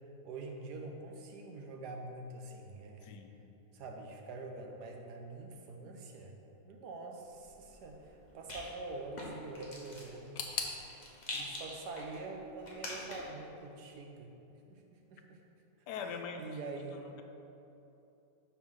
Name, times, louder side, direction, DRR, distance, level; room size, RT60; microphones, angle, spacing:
voice 1, 0.2-3.1 3.7-6.3 6.6-8.0 8.3-11.0 11.3-14.3 14.7-14.8 15.1-15.4 16.0-17.1, right 3 dB, 80° right, 2 dB, 1.3 m, -45 dB
voice 2, 3.0-3.4 15.9-16.5, left 6 dB, 85° left, 5 dB, 1.2 m, -41 dB
Rattle, 7.3-13.4, left 1 dB, 30° left, 1.0 m, -46 dB
sound 1, 10.3-13.2 13.5-14.3 14.6-14.7 15.5-15.6, left 5 dB, 65° left, 0.7 m, -44 dB
5.5 x 4.3 x 6.1 m, 2.9 s
omnidirectional pair, 1.7 m